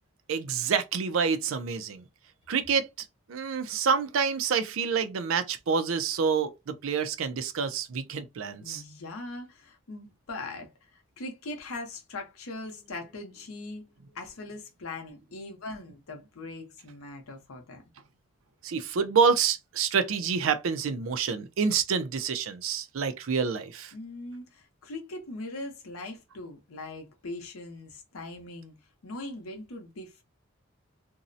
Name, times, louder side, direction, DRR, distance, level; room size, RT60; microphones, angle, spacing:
voice 1, 0.3-2.0 2.5-2.9 3.3-8.8 18.6-23.9, right 6 dB, 75° right, 0.4 m, -27 dB
voice 2, 8.6-17.8 23.9-28.7 29.0-30.2, left 2 dB, 90° left, 0.7 m, -41 dB
2.6 x 2.0 x 2.5 m
head